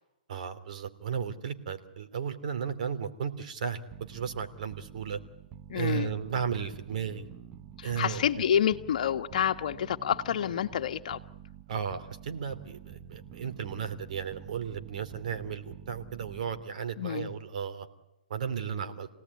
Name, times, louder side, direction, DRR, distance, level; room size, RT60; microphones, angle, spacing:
voice 1, 0.3-5.2 5.7-7.3 7.8-8.2 11.7-17.9 18.3-19.1, right 7 dB, 60° right, 9 dB, 2.9 m, -34 dB
sound 1, 3.9-16.8, right 10 dB, 25° right, 0.9 m, -48 dB
voice 2, 5.7-6.1 7.8-11.2 17.0-17.3, left 9 dB, 55° left, 7 dB, 1.6 m, -28 dB
27.5 x 18.0 x 9.7 m, 0.96 s
hypercardioid pair, 140°, 5 cm